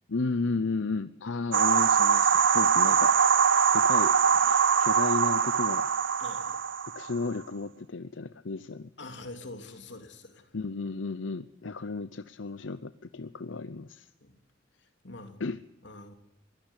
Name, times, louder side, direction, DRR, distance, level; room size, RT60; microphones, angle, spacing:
voice 1, 0.1-3.1 3.7-4.1 4.4-5.9 6.9-8.9 10.5-14.1 15.4-15.6, left 3 dB, 90° left, 14 dB, 0.8 m, -33 dB
sound 1, 1.5-7.2, right 6 dB, 85° right, 0.7 m, -23 dB
voice 2, 6.2-6.6 9.0-10.6 14.2-14.4 14.8-15.4 15.8-16.1, left 2 dB, 65° left, 6 dB, 3.1 m, -45 dB
22.5 x 17.0 x 8.2 m, 0.86 s
head